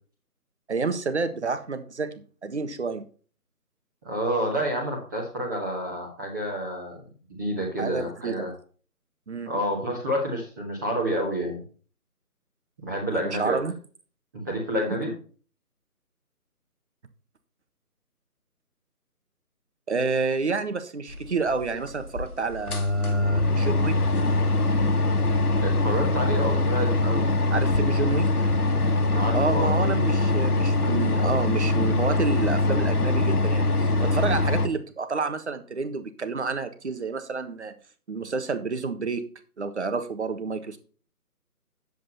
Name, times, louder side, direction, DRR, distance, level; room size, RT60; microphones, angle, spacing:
voice 1, 0.7-3.1 7.8-8.3 9.3-9.5 13.2-13.7 19.9-23.9 27.5-28.3 29.3-37.7 38.1-39.3 39.6-40.8, right 4 dB, 45° right, 10 dB, 1.5 m, -29 dB
voice 2, 4.0-7.0 7.3-8.5 9.5-11.6 12.8-13.6 14.3-15.1 25.6-27.3 29.1-29.7, equal, 10° right, -3 dB, 1.5 m, -29 dB
sound 1, 21.5-21.6 22.2-22.3 22.5-34.7, left 2 dB, 75° left, 1.6 m, -23 dB
9.1 x 8.2 x 4.1 m, 0.40 s
figure-of-eight pair, 160°, 46 cm